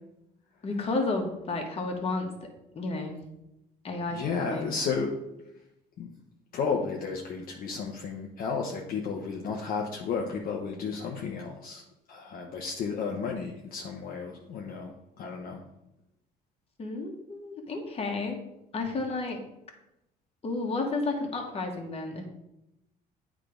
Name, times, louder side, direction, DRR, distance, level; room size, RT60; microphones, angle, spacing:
voice 1, 0.6-2.3 2.7-3.2 3.8-4.7 16.8-18.4 18.7-19.4 20.4-22.2, left 3 dB, 35° left, 2 dB, 1.7 m, -31 dB
voice 2, 4.1-5.2 6.0-6.1 6.5-11.8 12.1-15.6, left 5 dB, 60° left, 0 dB, 1.0 m, -33 dB
9.0 x 3.8 x 5.1 m, 0.87 s
cardioid pair, 110°, 17 cm